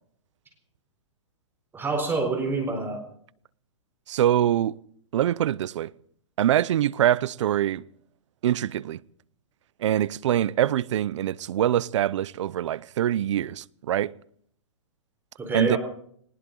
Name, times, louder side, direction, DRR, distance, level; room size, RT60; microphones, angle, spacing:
voice 1, 1.7-3.0 15.4-15.8, right 3 dB, 15° right, 4.2 m, -27 dB
voice 2, 4.1-4.8 5.1-5.9 6.4-7.8 8.4-9.0 9.8-14.1 15.5-15.8, right 11 dB, 65° right, 0.7 m, -24 dB
19.5 x 19.5 x 3.8 m
hypercardioid pair, 145°, 16 cm